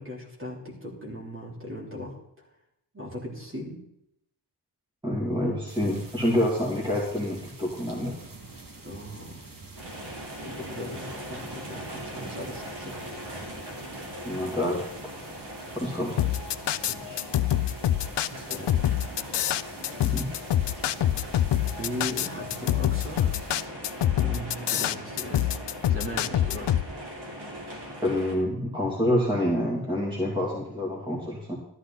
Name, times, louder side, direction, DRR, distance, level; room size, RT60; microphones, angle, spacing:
voice 1, 0.0-2.5 2.9-3.8 8.8-9.5 10.4-13.0 16.8-17.3 18.3-18.9 20.6-20.8 21.6-23.3 24.2-25.5 25.9-26.7, equal, 30° right, -2 dB, 3.2 m, -38 dB
voice 2, 5.0-8.1 14.2-14.9 15.7-16.2 20.0-20.3 28.0-31.6, left 1 dB, 10° right, -4 dB, 2.5 m, -27 dB
sound 1, 5.7-23.7, right 3 dB, 55° right, 1.8 m, -48 dB
sound 2, 9.8-28.3, equal, 70° right, 3.1 m, -41 dB
sound 3, 16.2-26.8, left 11 dB, 85° left, 0.6 m, -25 dB
13.5 x 12.0 x 3.9 m, 0.76 s
wide cardioid pair, 165°, 41 cm